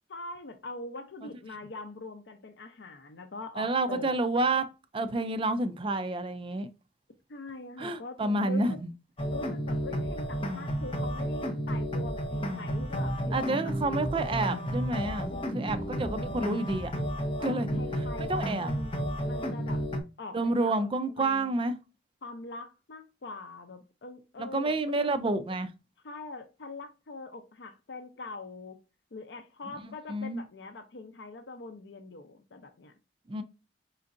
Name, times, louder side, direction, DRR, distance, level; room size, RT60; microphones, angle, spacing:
voice 1, 0.1-4.2 7.3-8.8 9.3-13.7 15.0-15.7 16.0-16.5 17.4-19.8 20.2-20.8 21.2-21.5 22.2-24.8 26.0-28.8 29.1-32.9, left 3 dB, 75° left, 0.6 m, -43 dB
voice 2, 3.6-4.6 4.9-6.7 7.8-8.9 13.3-16.9 17.4-17.7 18.3-18.7 20.3-21.7 24.4-25.7 30.1-30.4 33.3-33.4, right 2 dB, 30° right, 0.4 m, -29 dB
sound 1, 9.2-20.0, equal, 30° left, 0.7 m, -32 dB
4.4 x 3.9 x 2.5 m
head